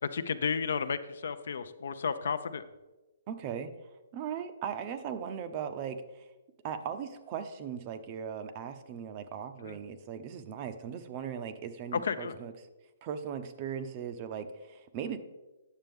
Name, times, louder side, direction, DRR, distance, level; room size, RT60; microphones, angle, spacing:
voice 1, 0.0-2.6 9.6-9.8 12.0-12.4, left 6 dB, 65° left, 12 dB, 0.5 m, -33 dB
voice 2, 3.3-6.3 6.6-12.5 13.0-15.2, right 8 dB, 25° right, 10 dB, 0.5 m, -38 dB
9.1 x 6.7 x 3.5 m, 1.1 s
hypercardioid pair, 165°, 0 cm